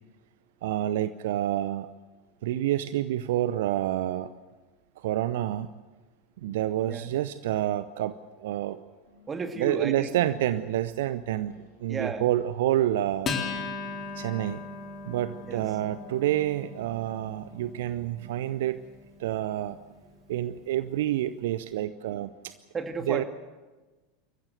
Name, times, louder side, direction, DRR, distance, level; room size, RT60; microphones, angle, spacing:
voice 1, 0.6-1.9 2.4-4.3 5.0-5.7 6.4-8.8 9.6-13.3 14.1-14.6 15.1-18.8 19.2-19.8 20.3-22.5 23.1-23.2, right 13 dB, 60° right, 14 dB, 0.6 m, -28 dB
sound 1, 9.0-17.7, left 3 dB, 75° left, 6.3 m, -59 dB
voice 2, 9.3-10.1 11.9-12.2 15.4-15.6 22.7-23.2, right 4 dB, 20° right, 6 dB, 2.2 m, -33 dB
Acoustic guitar, 13.2-20.1, left 4 dB, 30° left, 3.6 m, -38 dB
28.0 x 14.5 x 7.9 m, 1.3 s
figure-of-eight pair, 80°, 0 cm